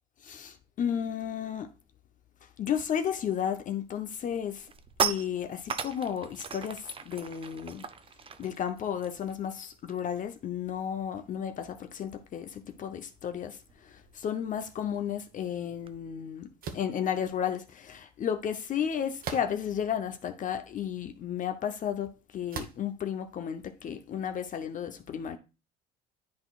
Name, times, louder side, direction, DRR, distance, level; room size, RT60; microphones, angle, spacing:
voice 1, 0.2-1.7 2.6-4.7 5.0-7.8 8.4-16.5 16.7-25.4, left 8 dB, 45° left, 0.7 m, -33 dB
sound 1, 3.6-3.9 4.2-10.2 10.4-10.7 11.0-16.0, right 6 dB, 30° right, 0.6 m, -38 dB
arrow .hits target, 16.6-16.9 19.2-19.8 20.5-20.6 22.5-22.9, right 6 dB, 50° right, 1.0 m, -38 dB
10.5 x 3.9 x 2.3 m
supercardioid pair, 100°, 19 cm